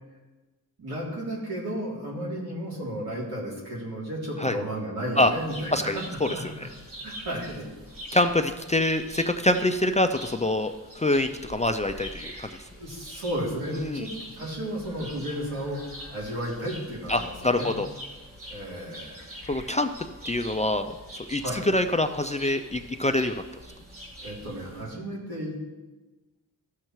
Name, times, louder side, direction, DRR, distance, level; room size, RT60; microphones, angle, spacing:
voice 1, 0.8-6.0 6.3-6.5 7.0-7.6 12.7-14.1 14.3-15.8 16.1-17.8 18.5-19.4 21.4-21.6 24.2-25.5, equal, 80° right, -5 dB, 2.9 m, -33 dB
sound 1, 5.2-24.8, equal, 35° right, 2.9 m, -44 dB
voice 2, 5.7-6.5 8.1-12.5 13.8-14.1 17.1-17.9 19.5-19.9 20.3-21.0 21.3-23.4, left 1 dB, 20° left, 7 dB, 0.3 m, -25 dB
15.0 x 6.5 x 3.1 m, 1.2 s
wide cardioid pair, 130°, 37 cm